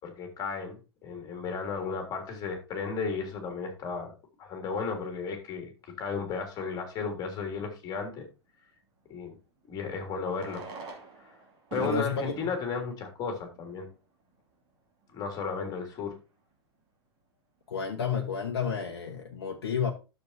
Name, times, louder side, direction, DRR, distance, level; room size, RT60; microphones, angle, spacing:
voice 1, 0.0-4.1 4.4-5.7 6.0-8.2 9.1-9.3 9.7-10.6 11.2-11.4 11.7-13.9 15.1-16.2, left 5 dB, 30° left, 3.2 m, -34 dB
Fireworks, 6.7-6.8 9.1-9.2 10.2-14.0 14.7-14.8 15.0-15.1 15.3-15.4 15.9-16.2, right 4 dB, 35° right, 2.8 m, -43 dB
voice 2, 11.8-12.3 17.7-19.9, left 6 dB, 60° left, 1.2 m, -31 dB
12.0 x 7.2 x 2.8 m
figure-of-eight pair, 95°, 14 cm